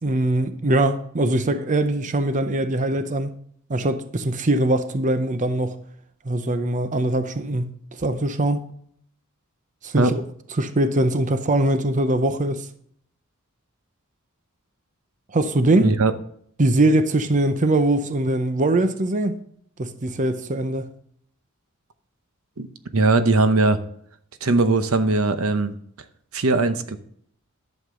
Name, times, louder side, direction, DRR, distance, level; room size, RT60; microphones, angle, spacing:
voice 1, 0.0-3.3 3.7-5.8 6.3-8.6 9.8-10.2 10.6-12.7 15.3-15.9 16.6-19.4 19.8-20.9, right 1 dB, 35° right, 0.6 m, -22 dB
voice 2, 15.8-16.1 22.6-22.7 22.9-23.8 24.4-25.7 26.3-27.0, right 3 dB, 80° right, 0.8 m, -19 dB
11.0 x 7.3 x 3.8 m
head